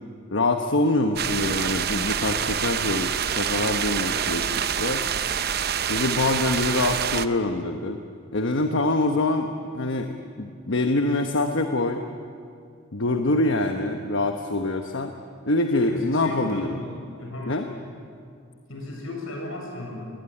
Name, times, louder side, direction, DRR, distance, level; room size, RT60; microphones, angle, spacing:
voice 1, 0.3-5.0 5.9-8.0 8.3-10.1 10.4-12.0 12.9-15.1 15.4-16.8 17.5-17.7, left 2 dB, 65° left, 5 dB, 1.2 m, -25 dB
sound 1, 1.2-7.3, right 8 dB, 50° right, 0.7 m, -26 dB
voice 2, 15.9-17.6 18.7-20.1, left 1 dB, 90° left, 1 dB, 7.3 m, -36 dB
21.0 x 21.0 x 10.0 m, 2.3 s
head